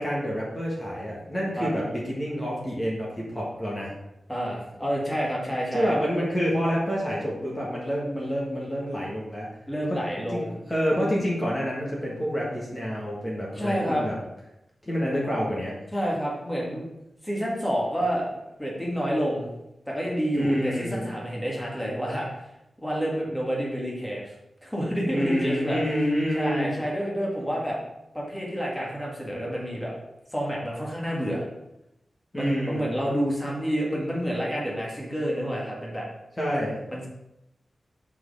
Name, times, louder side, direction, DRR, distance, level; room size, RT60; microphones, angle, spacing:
voice 1, 0.0-3.9 5.7-9.5 10.3-14.2 14.8-15.7 20.3-21.1 25.1-26.7 32.3-32.9 36.4-36.8, equal, 20° left, -4 dB, 1.6 m, -28 dB
voice 2, 4.3-6.0 9.7-10.6 13.6-14.1 15.9-16.9 17.2-18.3 18.6-19.5 19.9-22.5 22.8-24.3 24.6-25.8 26.3-27.8 28.1-29.9 30.3-31.4 32.3-36.1 36.9-37.1, equal, 5° left, -4 dB, 1.7 m, -29 dB
6.1 x 4.7 x 6.2 m, 0.88 s
wide cardioid pair, 165°, 0 cm